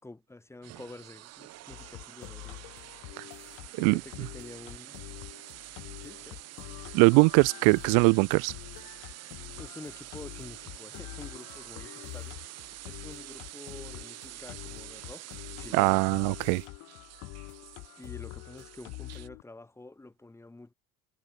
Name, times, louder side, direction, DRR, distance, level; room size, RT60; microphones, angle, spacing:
voice 1, 0.0-2.8 3.7-5.0 5.9-6.4 9.5-16.0 18.0-20.7, left 2 dB, 10° left, 5.7 m, -48 dB
sound 1, 0.6-19.3, right 15 dB, 55° right, 3.5 m, -47 dB
sound 2, 1.7-19.4, left 26 dB, 80° left, 6.9 m, -46 dB
voice 2, 6.9-8.5 15.7-16.6, right 34 dB, 90° right, 0.8 m, -21 dB
cardioid pair, 150°, 31 cm